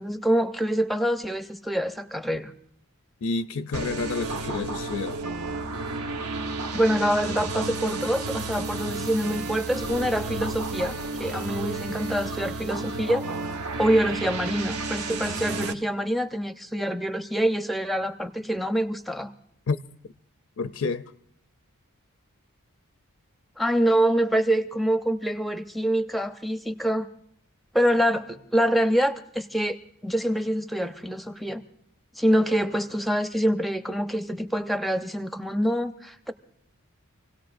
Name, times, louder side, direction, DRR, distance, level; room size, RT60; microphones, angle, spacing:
voice 1, 0.0-2.5 6.7-13.2 13.8-19.3 23.6-27.1 27.7-29.8 30.0-31.6 32.2-36.3, equal, ahead, 0.6 m, -25 dB
voice 2, 3.2-5.2 19.7-19.8 20.6-21.1, left 4 dB, 70° left, 0.5 m, -29 dB
sound 1, 3.7-15.7, right 3 dB, 85° right, 1.1 m, -32 dB
26.5 x 17.5 x 2.5 m
head